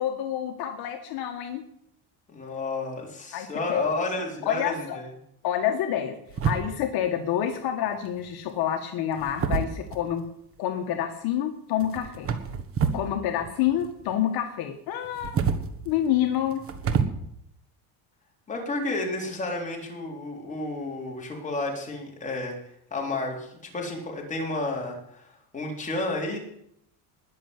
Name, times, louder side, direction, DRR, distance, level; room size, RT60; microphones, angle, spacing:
voice 1, 0.0-1.6 3.3-3.8 4.4-5.0 5.4-6.2 6.4-10.2 10.6-12.3 12.9-15.4 15.8-16.6, left 10 dB, 60° left, 5 dB, 1.5 m, -28 dB
voice 2, 2.3-5.1 18.5-26.4, left 2 dB, 15° left, 0 dB, 3.9 m, -31 dB
sound 1, 6.3-7.0 8.0-8.4 9.1-10.3 11.8-13.1 13.4-14.2 15.0-17.0, right 6 dB, 30° right, 1.4 m, -28 dB
20.0 x 6.8 x 8.1 m, 0.73 s
cardioid pair, 165°, 43 cm